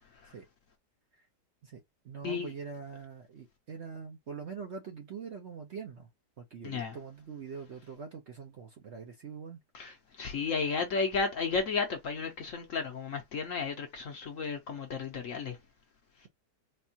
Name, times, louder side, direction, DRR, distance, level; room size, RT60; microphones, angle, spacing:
voice 1, 1.6-6.1 6.4-9.6, right 6 dB, 55° right, 0.8 m, -43 dB
voice 2, 6.6-7.0 9.7-15.6, left 5 dB, 60° left, 0.9 m, -33 dB
4.3 x 2.3 x 2.8 m
omnidirectional pair, 1.9 m